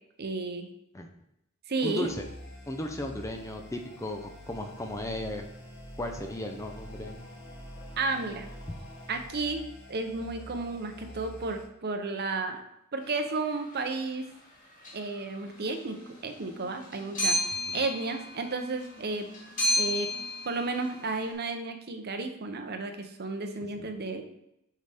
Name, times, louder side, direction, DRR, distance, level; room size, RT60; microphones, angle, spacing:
voice 1, 0.2-0.7 1.7-2.1 8.0-8.5 9.1-9.6 9.9-12.6 12.9-14.3 14.9-16.0 16.2-17.4 17.7-19.3 19.8-20.1 20.4-24.2, right 3 dB, 50° right, 6 dB, 0.8 m, -32 dB
voice 2, 1.8-2.2 2.7-5.4 6.0-7.2 17.7-17.8 23.8-23.9, left 1 dB, 15° left, 4 dB, 0.5 m, -35 dB
sound 1, 2.0-11.6, equal, 55° left, 2.4 m, -46 dB
sound 2, 13.6-13.7 14.8-15.2 15.5-21.3, left 1 dB, 40° left, 2.0 m, -33 dB
6.5 x 5.0 x 3.5 m, 0.83 s
head